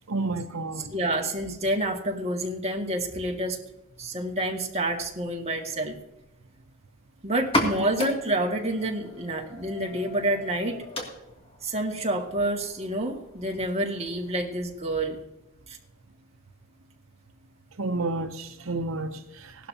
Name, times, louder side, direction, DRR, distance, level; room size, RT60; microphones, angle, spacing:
voice 1, 0.1-0.9 7.8-7.9 17.8-19.7, right 2 dB, 85° right, 0.9 m, -31 dB
voice 2, 0.9-3.6 4.0-6.0 7.2-10.8 11.6-15.2 15.7-15.8, right 1 dB, 30° right, 2.0 m, -28 dB
sound 1, 7.4-14.8, left 1 dB, 30° left, 2.5 m, -35 dB
18.0 x 12.5 x 2.9 m
head